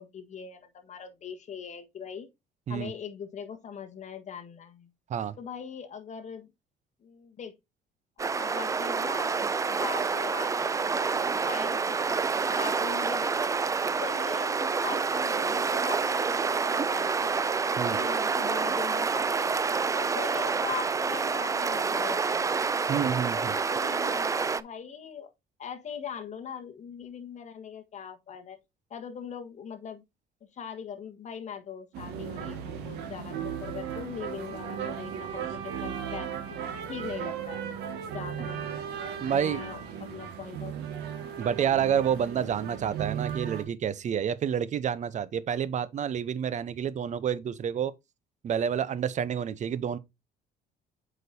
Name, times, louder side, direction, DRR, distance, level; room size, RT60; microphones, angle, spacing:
voice 1, 0.0-2.3 2.7-4.9 5.4-6.5 7.0-7.5 8.2-12.2 12.5-13.3 13.9-17.5 17.9-19.6 19.9-22.5 23.1-25.3 25.6-28.6 28.9-30.0 30.4-36.3 36.9-38.7 38.9-40.7 41.5-41.8, left 7 dB, 45° left, 1.5 m, -41 dB
sound 1, 8.2-24.6, right 5 dB, 20° right, 0.4 m, -28 dB
voice 2, 22.9-23.6 39.2-39.6 41.4-47.9 48.4-50.0, right 8 dB, 45° right, 0.8 m, -29 dB
sound 2, 31.9-43.6, right 8 dB, 90° right, 1.9 m, -36 dB
7.8 x 5.2 x 2.7 m
cardioid pair, 110°, 17 cm